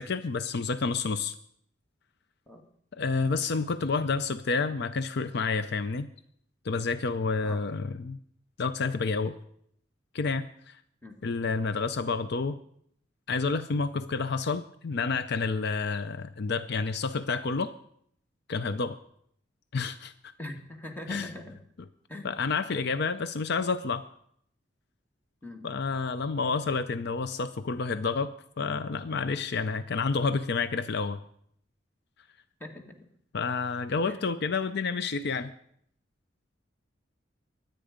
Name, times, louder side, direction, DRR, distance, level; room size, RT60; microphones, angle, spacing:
voice 1, 0.0-1.3 2.9-6.1 6.6-8.2 8.6-9.4 10.1-10.8 11.2-12.6 13.3-17.7 18.5-19.0 19.7-20.3 21.1-21.3 22.2-24.1 25.6-31.2 33.3-35.5, left 4 dB, 60° left, 13 dB, 0.6 m, -29 dB
voice 2, 20.4-21.6 22.1-22.3 25.4-25.7 32.6-33.0 34.1-34.2, left 1 dB, 10° left, 3 dB, 1.9 m, -41 dB
23.0 x 9.0 x 5.1 m, 0.68 s
head